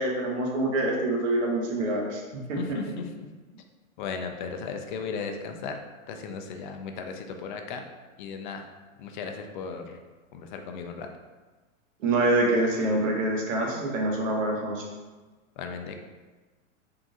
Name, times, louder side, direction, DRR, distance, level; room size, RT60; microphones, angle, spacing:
voice 1, 0.0-2.8 12.0-14.8, right 1 dB, 70° right, -1 dB, 1.1 m, -26 dB
voice 2, 2.6-3.0 4.0-5.8 6.1-7.8 8.2-8.7 9.0-10.0 10.3-11.1 15.6-16.0, left 5 dB, 40° left, 5 dB, 0.4 m, -36 dB
3.7 x 2.6 x 3.6 m, 1.3 s
hypercardioid pair, 135°, 40 cm